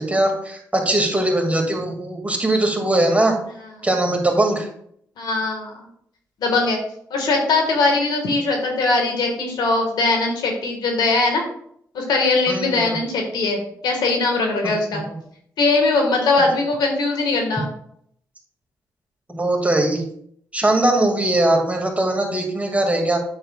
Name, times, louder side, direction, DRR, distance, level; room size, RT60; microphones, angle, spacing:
voice 1, 0.0-3.4 3.8-4.7 12.5-13.0 14.6-15.2 19.3-20.0 20.5-23.2, right 1 dB, 20° right, 2 dB, 2.2 m, -20 dB
voice 2, 5.2-5.7 6.4-6.8 7.1-11.4 11.9-15.0 15.6-17.7, left 3 dB, 75° left, 2 dB, 1.7 m, -20 dB
8.9 x 6.7 x 2.4 m, 0.68 s
supercardioid pair, 45°, 7 cm